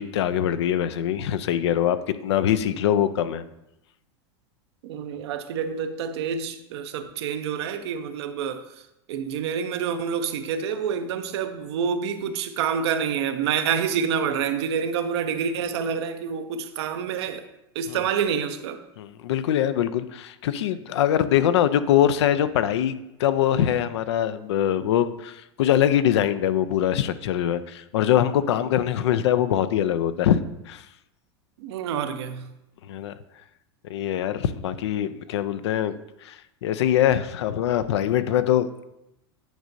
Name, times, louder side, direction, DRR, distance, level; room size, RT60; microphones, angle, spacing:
voice 1, 0.0-3.4 17.9-18.0 19.0-30.4 30.7-30.8 32.9-33.1 33.8-36.0 36.2-36.4 36.6-38.8, left 10 dB, 75° left, 13 dB, 0.4 m, -23 dB
voice 2, 4.8-17.5 17.7-18.8 31.6-32.5, right 7 dB, 70° right, 8 dB, 0.6 m, -28 dB
9.2 x 5.1 x 2.6 m, 0.87 s
hypercardioid pair, 105°, 14 cm